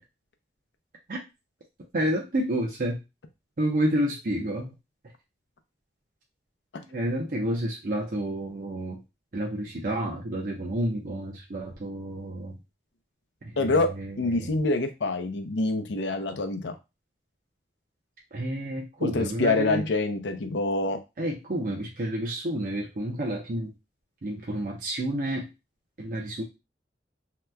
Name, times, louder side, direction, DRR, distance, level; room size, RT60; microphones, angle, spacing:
voice 1, 1.9-3.0 3.6-4.7 6.9-9.0 9.3-12.6 13.4-14.5 18.3-19.9 21.2-23.7 24.2-25.5 26.0-26.4, right 1 dB, 50° right, -1 dB, 0.6 m, -30 dB
voice 2, 13.6-13.9 14.2-16.8 19.0-21.0, left 3 dB, 85° left, 7 dB, 0.5 m, -26 dB
2.8 x 2.2 x 3.3 m, 0.25 s
head